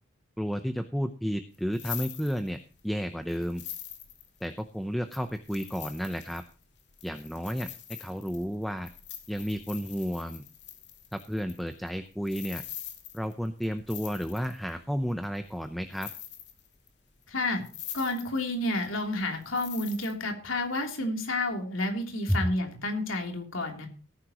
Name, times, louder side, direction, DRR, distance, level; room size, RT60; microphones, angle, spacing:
voice 1, 0.4-3.6 4.4-6.4 7.0-7.7 8.0-8.9 9.3-10.4 11.1-12.6 13.1-16.1 22.3-22.4, equal, ahead, 8 dB, 0.7 m, -32 dB
sound 1, 1.5-2.8 3.3-4.6 5.1-14.7 15.2-15.7 15.9-16.9 17.2-17.3 17.6-18.5 18.8-20.1, left 11 dB, 55° left, 2.7 m, -43 dB
voice 2, 17.3-17.6 17.9-23.9, left 2 dB, 85° left, 3 dB, 3.3 m, -30 dB
18.5 x 10.0 x 3.0 m, 0.38 s
head